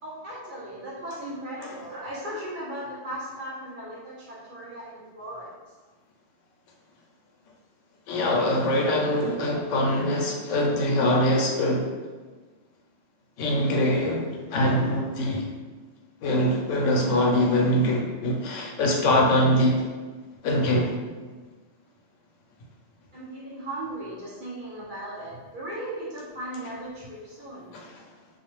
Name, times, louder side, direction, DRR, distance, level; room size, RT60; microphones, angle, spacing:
voice 1, 0.0-5.5 23.1-27.7, right 1 dB, 55° right, -7 dB, 0.6 m, -37 dB
voice 2, 8.1-11.9 13.4-15.5 16.2-19.9 20.4-20.9 27.7-28.0, left 1 dB, 85° left, -1 dB, 0.9 m, -23 dB
2.4 x 2.2 x 2.9 m, 1.3 s
omnidirectional pair, 1.2 m